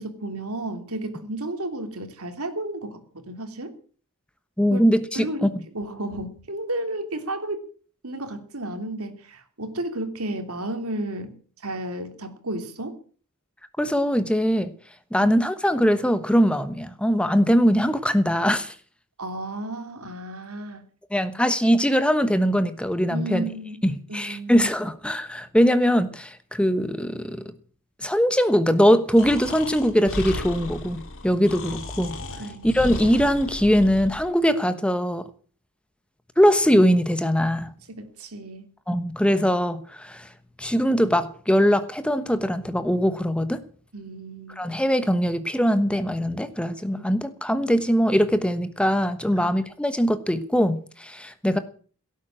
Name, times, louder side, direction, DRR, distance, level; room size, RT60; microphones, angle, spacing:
voice 1, 0.0-3.7 4.7-4.9 5.1-7.6 8.0-11.3 11.6-13.0 15.2-15.3 19.2-20.8 23.1-23.8 24.1-24.7 32.4-32.7 38.0-38.7 43.9-44.7 49.4-49.5, right 1 dB, 70° right, 7 dB, 3.1 m, -33 dB
voice 2, 4.6-5.5 13.8-14.7 15.1-18.7 21.1-23.4 23.8-27.4 28.0-32.2 32.6-35.3 36.4-37.7 38.9-40.3 40.6-43.6 44.6-51.6, equal, 5° left, 11 dB, 1.1 m, -21 dB
Breathing, 29.2-34.3, left 2 dB, 65° left, 3.9 m, -35 dB
17.5 x 9.3 x 8.8 m, 0.43 s
head